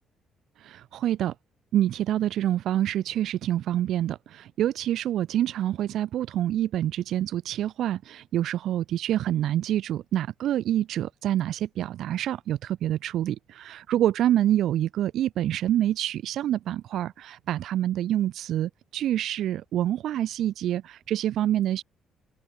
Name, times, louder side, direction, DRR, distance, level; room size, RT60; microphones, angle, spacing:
voice 1, 0.6-1.3 1.7-21.8, right 12 dB, 75° right, 4.5 m, -27 dB
open air
cardioid pair, 90°, 0 cm